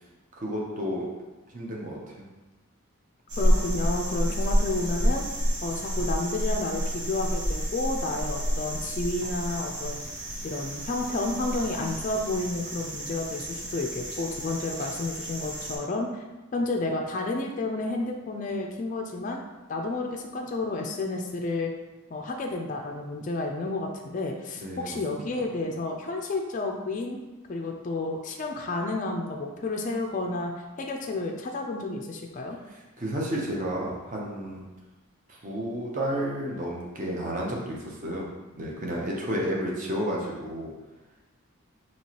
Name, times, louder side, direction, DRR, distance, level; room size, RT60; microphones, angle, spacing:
voice 1, 0.3-1.1 1.5-2.3 24.5-25.3 32.7-34.7 35.3-40.8, equal, 35° right, -3 dB, 0.7 m, -32 dB
sound 1, 3.3-15.8, equal, 85° right, 1.1 m, -29 dB
voice 2, 3.4-5.2 5.6-10.0 10.4-16.2 16.5-19.4 19.7-21.7 22.1-27.2 27.5-30.5 30.8-32.6, left 2 dB, 35° left, 1 dB, 0.3 m, -31 dB
4.5 x 2.9 x 2.9 m, 1.2 s
head